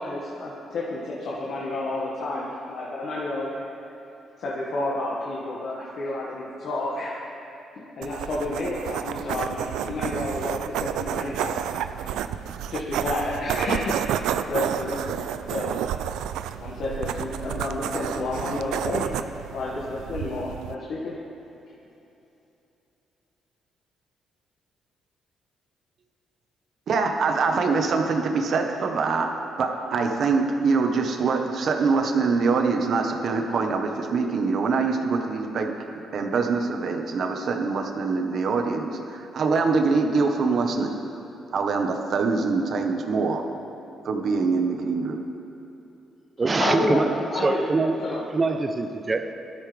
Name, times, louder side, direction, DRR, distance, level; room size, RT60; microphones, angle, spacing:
voice 1, 0.0-3.7 4.4-7.2 8.0-11.8 12.7-15.8 16.6-21.1 46.6-47.6 48.0-48.2, left 2 dB, 65° left, 1.8 m, -30 dB
sound 1, 8.0-20.7, right 10 dB, 90° right, 0.4 m, -30 dB
voice 2, 26.9-29.3 29.6-35.7 36.1-41.0 41.5-43.4 44.0-45.2, right 4 dB, 60° right, 1.3 m, -24 dB
voice 3, 46.4-49.3, right 3 dB, 30° right, 0.9 m, -24 dB
18.5 x 12.5 x 3.5 m
cardioid pair, 90°, 0 cm